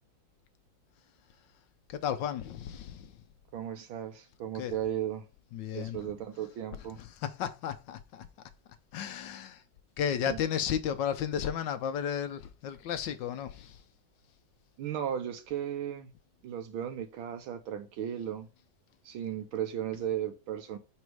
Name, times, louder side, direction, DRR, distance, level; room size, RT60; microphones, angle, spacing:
voice 1, 1.9-3.2 4.5-4.7 5.5-6.1 6.8-8.3 8.9-9.6 10.0-13.8, left 9 dB, 75° left, 1.2 m, -34 dB
voice 2, 3.5-5.2 5.7-7.0 10.3-10.4 14.8-16.1 16.4-18.5 19.1-20.8, right 10 dB, 90° right, 1.7 m, -35 dB
5.4 x 4.1 x 4.7 m
omnidirectional pair, 2.2 m